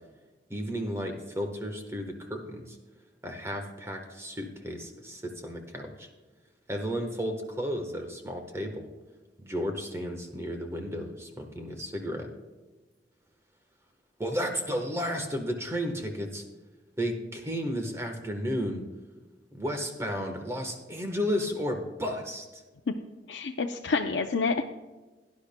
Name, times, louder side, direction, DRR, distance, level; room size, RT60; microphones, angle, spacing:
voice 1, 0.5-2.8 3.2-6.1 6.7-8.9 9.4-12.3 14.2-16.4 17.0-18.8 19.5-22.6, equal, 15° right, 4 dB, 1.2 m, -33 dB
voice 2, 23.3-24.7, left 4 dB, 85° left, 3 dB, 0.6 m, -28 dB
17.0 x 10.5 x 2.2 m, 1.2 s
head